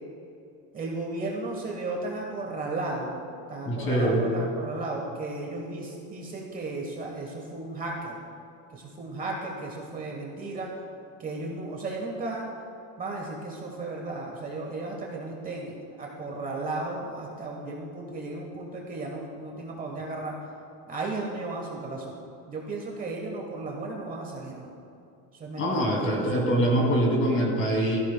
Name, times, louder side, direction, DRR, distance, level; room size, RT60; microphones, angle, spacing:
voice 1, 0.7-3.2 3.5-8.2 8.7-10.7 11.2-12.5 13.0-20.3 20.9-22.1 22.5-24.7 25.3-26.8, right 2 dB, 20° right, -1 dB, 1.1 m, -35 dB
voice 2, 3.7-4.3 25.6-28.0, right 1 dB, 30° left, -1 dB, 2.5 m, -24 dB
17.0 x 14.5 x 2.2 m, 2.6 s
cardioid pair, 175°, 39 cm